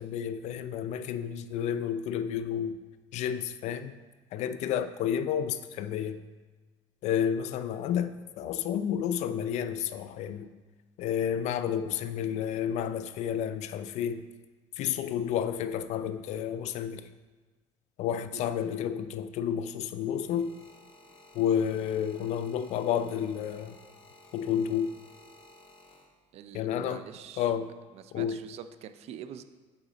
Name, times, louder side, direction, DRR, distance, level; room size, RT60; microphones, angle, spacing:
voice 1, 0.0-2.8 3.1-3.9 4.3-6.2 7.0-10.5 11.0-14.2 14.8-17.1 18.0-20.6 21.3-23.8 24.3-24.9 26.5-27.0 27.4-27.7 28.1-28.4, left 9 dB, 65° left, 11 dB, 0.4 m, -30 dB
sound 1, 19.7-26.5 27.3-27.7, left 2 dB, 45° left, 1.0 m, -56 dB
voice 2, 26.3-27.5 27.9-29.4, right 9 dB, 55° right, 11 dB, 0.4 m, -45 dB
7.1 x 4.9 x 4.0 m, 1.3 s
cardioid pair, 115°, 13 cm